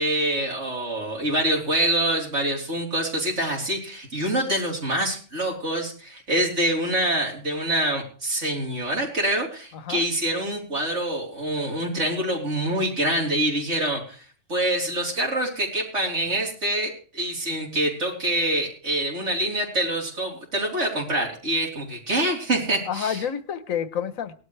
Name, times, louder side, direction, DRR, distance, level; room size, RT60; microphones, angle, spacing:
voice 1, 0.0-14.2 14.5-23.2, right 1 dB, 60° right, -3 dB, 4.1 m, -25 dB
voice 2, 9.7-10.1 22.9-24.3, left 8 dB, 85° left, 13 dB, 1.4 m, -29 dB
19.0 x 12.0 x 3.3 m, 0.41 s
omnidirectional pair, 1.4 m